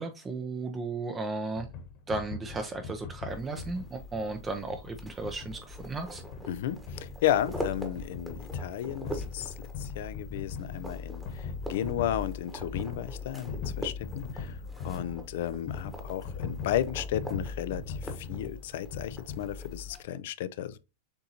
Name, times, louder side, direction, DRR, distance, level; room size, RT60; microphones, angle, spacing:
voice 1, 0.0-1.7 2.1-6.2, right 3 dB, 15° right, 0.5 m, -35 dB
sound 1, 1.6-19.9, left 5 dB, 45° left, 1.2 m, -40 dB
sound 2, 3.3-20.0, equal, ahead, 1.1 m, -45 dB
voice 2, 6.5-9.5 9.8-14.6 14.8-20.8, left 11 dB, 65° left, 0.4 m, -33 dB
6.8 x 2.6 x 2.8 m
supercardioid pair, 140°, 0 cm